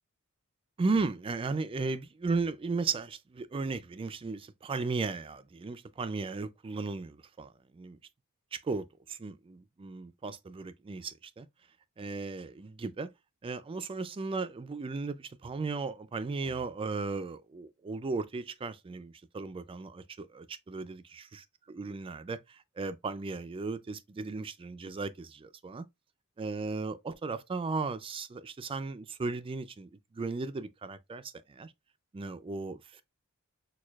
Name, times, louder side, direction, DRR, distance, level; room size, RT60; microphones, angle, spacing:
voice 1, 0.8-8.0 8.5-11.5 12.0-13.1 13.4-21.0 21.7-25.9 26.4-31.7 32.1-33.0, right 4 dB, 25° right, 0.3 m, -36 dB
6.2 x 2.3 x 2.3 m
head